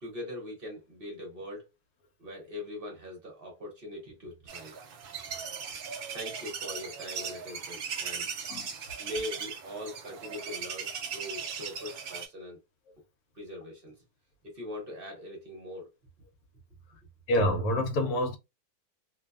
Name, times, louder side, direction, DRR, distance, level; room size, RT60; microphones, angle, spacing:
voice 1, 0.0-1.7 2.2-4.7 6.1-8.3 9.0-12.6 13.3-14.0 14.4-15.9, left 1 dB, 45° right, 0.8 m, -41 dB
sound 1, 4.5-12.3, right 6 dB, 70° right, 0.5 m, -38 dB
voice 2, 17.3-18.4, equal, 80° left, 1.1 m, -27 dB
2.6 x 2.2 x 2.3 m
omnidirectional pair, 1.6 m